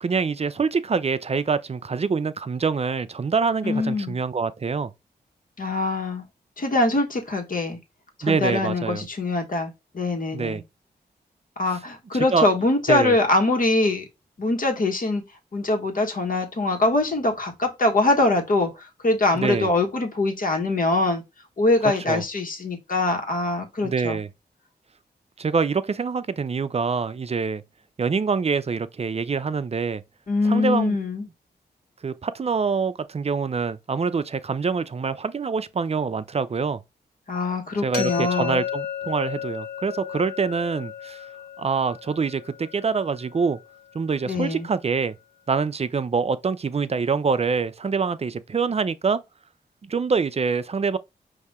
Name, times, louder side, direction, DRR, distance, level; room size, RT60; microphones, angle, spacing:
voice 1, 0.0-4.9 8.2-9.1 10.3-10.6 12.1-12.5 12.9-13.2 19.3-19.7 22.1-22.2 23.8-24.3 25.4-27.6 28.0-30.0 30.4-31.0 32.0-36.8 37.8-41.2 41.6-43.6 43.9-45.1 45.5-49.2 49.8-51.0, right 5 dB, 35° right, 0.5 m, -25 dB
voice 2, 3.6-4.2 5.6-6.2 6.6-7.8 8.2-10.6 11.6-14.0 14.4-15.2 15.5-21.2 21.6-24.2 30.3-31.3 37.3-38.6 44.3-44.7, left 2 dB, 50° left, 1.5 m, -23 dB
sound 1, 37.9-43.8, left 9 dB, 65° left, 1.6 m, -33 dB
5.3 x 2.8 x 3.6 m
cardioid pair, 50°, 18 cm